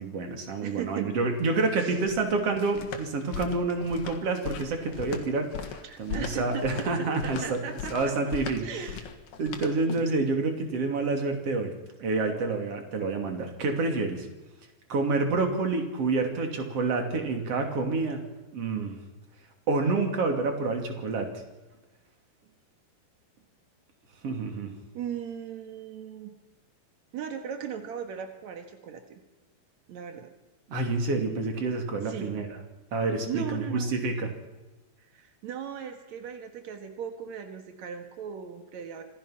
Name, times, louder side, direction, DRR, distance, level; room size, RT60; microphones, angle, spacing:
voice 1, 0.0-7.6 7.9-8.6 9.4-11.7 12.0-14.3 14.9-18.2 18.5-19.0 19.7-21.3 24.2-24.7 30.7-32.5 32.9-34.3, right 3 dB, 40° right, 4 dB, 2.8 m, -28 dB
voice 2, 0.6-1.1 1.8-2.0 5.8-6.6 7.2-8.1 8.6-9.0 24.9-26.3 27.1-29.2 29.9-30.3 32.0-32.4 33.3-33.9 35.1-39.0, right 8 dB, 80° right, 6 dB, 1.6 m, -38 dB
sound 1, 1.3-10.2, left 8 dB, 60° left, 2.7 m, -39 dB
26.5 x 18.0 x 5.9 m, 1.1 s
omnidirectional pair, 5.8 m